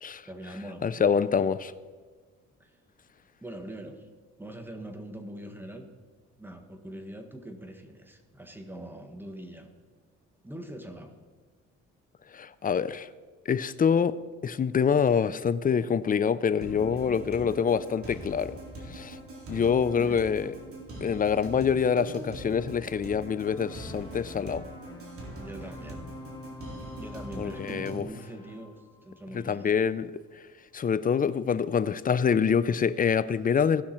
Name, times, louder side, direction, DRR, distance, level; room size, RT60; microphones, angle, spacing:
voice 1, 0.3-1.4 2.6-2.8 3.4-4.0 4.4-5.9 6.4-9.7 10.4-11.1 16.8-17.6 19.8-20.2 25.3-26.0 27.0-28.7 29.0-29.8, right 1 dB, 5° right, 1.4 m, -43 dB
voice 2, 0.8-1.7 12.3-13.1 13.5-14.2 14.4-18.6 18.9-19.2 19.5-20.5 21.0-24.6 27.4-28.1 29.3-30.1 30.7-33.8, left 6 dB, 30° left, 0.4 m, -26 dB
sound 1, 16.6-28.0, right 1 dB, 50° right, 3.0 m, -42 dB
sound 2, 23.4-29.5, left 3 dB, 10° left, 3.0 m, -48 dB
17.0 x 5.9 x 4.4 m
cardioid pair, 90°, 30 cm